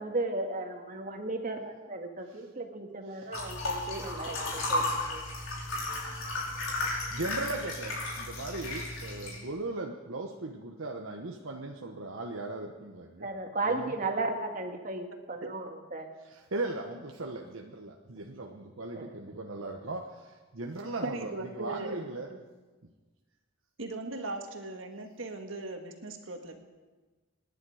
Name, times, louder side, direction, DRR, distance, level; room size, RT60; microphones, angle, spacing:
voice 1, 0.0-5.2 13.2-16.1 18.9-19.1, right 2 dB, 40° right, 4 dB, 1.9 m, -35 dB
voice 2, 3.1-3.5 7.1-13.3 13.6-14.0 16.2-22.3 22.8-22.9, right 2 dB, 85° right, 2 dB, 1.1 m, -38 dB
sound 1, 3.3-9.4, left 2 dB, 85° left, 5.1 m, -34 dB
voice 3, 21.0-22.0 22.3-22.4 23.8-26.6, right 2 dB, 70° right, 4 dB, 1.9 m, -38 dB
27.0 x 10.5 x 4.9 m, 1.3 s
head